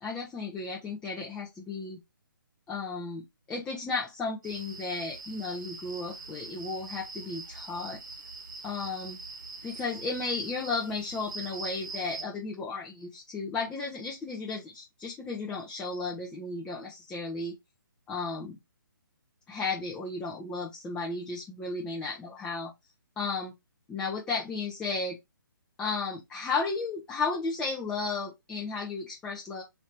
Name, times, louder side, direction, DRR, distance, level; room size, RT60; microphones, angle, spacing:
voice 1, 0.0-2.0 2.7-8.0 8.6-9.2 9.6-17.5 18.1-18.6 19.5-22.7 23.2-23.5 23.9-25.2 25.8-29.6, left 4 dB, 10° left, 0.5 m, -34 dB
sound 1, 4.4-12.2, right 3 dB, 65° right, 1.0 m, -43 dB
3.1 x 2.7 x 4.4 m
hypercardioid pair, 150°, 12 cm